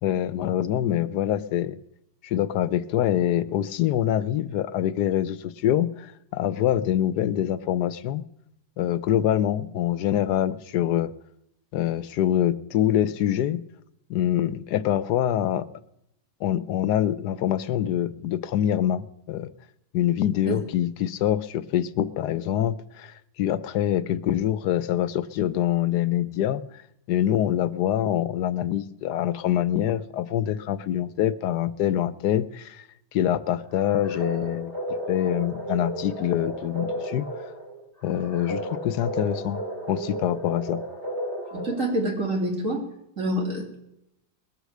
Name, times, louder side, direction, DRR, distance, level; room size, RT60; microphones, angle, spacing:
voice 1, 0.0-1.8 2.2-8.2 8.8-11.1 11.7-13.6 14.1-15.6 16.4-19.5 19.9-26.6 27.1-32.8 33.1-34.7 35.1-37.2 38.0-39.6 39.9-40.8, left 11 dB, 90° left, 15 dB, 1.3 m, -25 dB
sound 1, 33.7-42.2, right 1 dB, 30° right, 3.3 m, -33 dB
voice 2, 41.5-42.8 43.2-43.8, right 1 dB, 50° right, 0 dB, 3.5 m, -27 dB
20.0 x 8.2 x 6.6 m, 0.80 s
omnidirectional pair, 1.7 m